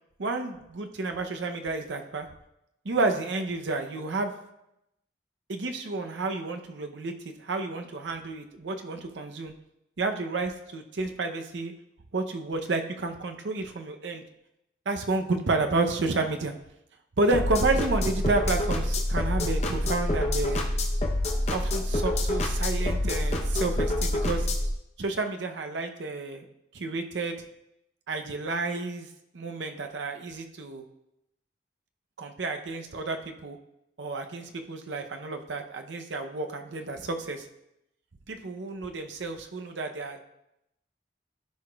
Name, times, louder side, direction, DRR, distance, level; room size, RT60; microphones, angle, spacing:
voice 1, 0.2-2.3 2.8-4.3 5.5-7.1 7.4-9.5 10.0-11.7 12.1-14.2 14.9-16.5 17.2-20.7 21.5-24.5 25.0-26.5 26.7-27.4 28.1-29.1 29.3-30.9 32.2-33.6 34.0-37.5 38.3-40.2, right 3 dB, 85° right, 5 dB, 0.7 m, -30 dB
sound 1, 17.3-24.7, left 1 dB, 35° left, 0.8 m, -27 dB
13.5 x 4.8 x 2.3 m, 0.84 s
head